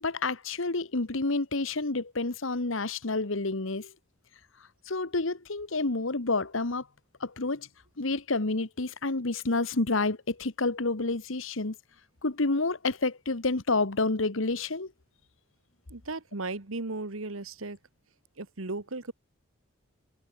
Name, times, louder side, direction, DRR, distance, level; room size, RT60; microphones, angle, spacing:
voice 1, 0.0-3.9 4.9-6.8 7.2-7.7 8.0-11.7 12.2-14.9, left 3 dB, 80° left, 1.5 m, -29 dB
voice 2, 15.9-17.8 18.4-19.1, right 3 dB, 90° right, 1.7 m, -36 dB
head